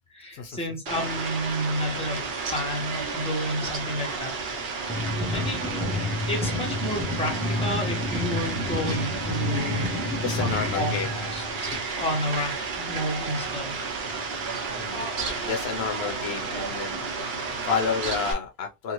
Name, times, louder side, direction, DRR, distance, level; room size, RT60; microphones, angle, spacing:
voice 1, 0.1-2.3 2.5-4.3 5.3-5.9 6.3-9.9 10.4-11.0 11.3-11.7 12.0-13.8, equal, 5° left, 0.9 m, -31 dB
Fowl, 0.9-18.3, right 4 dB, 70° right, 1.0 m, -32 dB
sound 1, 4.9-11.7, left 2 dB, 15° right, 0.3 m, -30 dB
voice 2, 10.2-11.3 11.6-11.8 14.8-18.9, left 6 dB, 75° left, 0.8 m, -31 dB
2.8 x 2.4 x 2.9 m
omnidirectional pair, 1.1 m